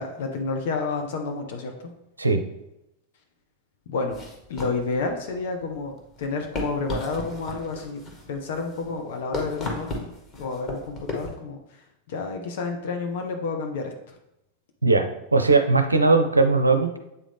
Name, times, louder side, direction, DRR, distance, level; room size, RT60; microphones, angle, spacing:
voice 1, 0.0-1.9 3.9-4.2 4.5-10.1 10.4-14.1, left 4 dB, 55° left, 3 dB, 0.7 m, -30 dB
sound 1, 4.1-11.3, left 1 dB, 30° left, 1.6 m, -36 dB
voice 2, 15.3-17.0, right 3 dB, 80° right, 7 dB, 0.6 m, -19 dB
8.3 x 3.7 x 3.4 m, 0.87 s
figure-of-eight pair, 90°, 0 cm